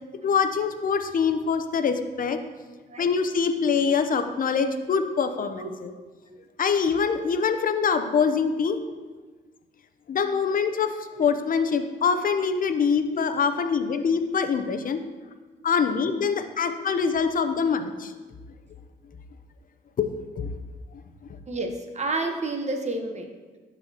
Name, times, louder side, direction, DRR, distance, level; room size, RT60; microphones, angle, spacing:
voice 1, 0.2-2.4 3.0-5.9 6.6-8.8 10.1-15.0 15.6-18.1 20.0-20.5, left 6 dB, 45° left, 8 dB, 0.6 m, -24 dB
voice 2, 21.5-23.3, right 2 dB, 40° right, 4 dB, 1.0 m, -30 dB
11.5 x 4.1 x 2.8 m, 1.3 s
cardioid pair, 70°, 19 cm